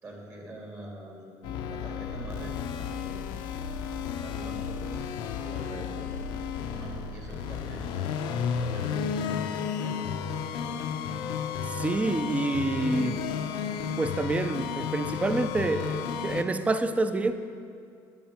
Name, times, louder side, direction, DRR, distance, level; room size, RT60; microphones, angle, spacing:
voice 1, 0.0-2.5 2.8-3.3 4.2-6.1 6.6-7.9 8.6-10.1, right 1 dB, 35° right, -2 dB, 2.2 m, -43 dB
sound 1, 1.4-16.4, left 7 dB, 75° left, 0.6 m, -33 dB
voice 2, 11.7-13.2 14.0-17.3, right 2 dB, 15° right, 10 dB, 0.5 m, -27 dB
10.5 x 7.5 x 3.6 m, 2.4 s
supercardioid pair, 100°, 8 cm